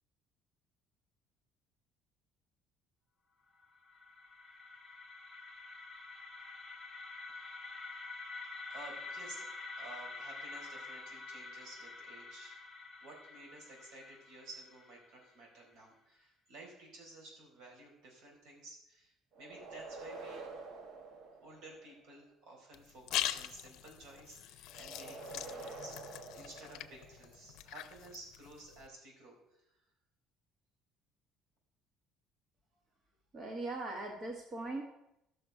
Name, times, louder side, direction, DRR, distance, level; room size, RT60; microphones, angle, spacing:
sound 1, 3.6-15.6, left 3 dB, 5° left, 1.2 m, -48 dB
voice 1, 7.3-7.7 8.7-9.5 9.8-12.6 13.0-20.4 21.3-29.4, right 2 dB, 80° right, -1 dB, 4.5 m, -53 dB
sound 2, 19.3-22.1 24.7-27.4, right 3 dB, 60° right, 1.4 m, -48 dB
sound 3, 22.7-28.9, left 13 dB, 70° left, 0.7 m, -42 dB
voice 2, 33.3-34.8, right 2 dB, 35° right, 0 dB, 1.6 m, -40 dB
13.0 x 6.5 x 5.8 m, 0.84 s
cardioid pair, 150°, 0 cm